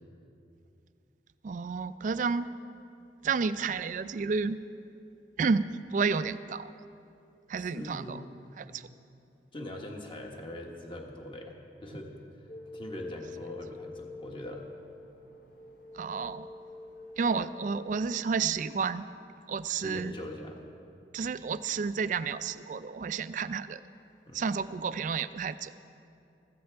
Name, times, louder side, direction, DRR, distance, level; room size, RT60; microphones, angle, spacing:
voice 1, 1.4-2.5 3.2-4.6 5.4-6.7 7.5-8.2 8.6-8.9 15.9-16.5 17.2-19.0 19.5-20.1 21.1-23.8 24.3-25.7, right 5 dB, 45° right, 14 dB, 0.3 m, -31 dB
voice 2, 7.6-8.3 9.5-11.6 11.8-14.7 19.7-20.6 24.3-24.5, left 1 dB, 30° left, 2 dB, 1.2 m, -42 dB
sound 1, 12.5-18.2, left 2 dB, 50° left, 0.9 m, -46 dB
14.5 x 14.5 x 3.4 m, 2.7 s
head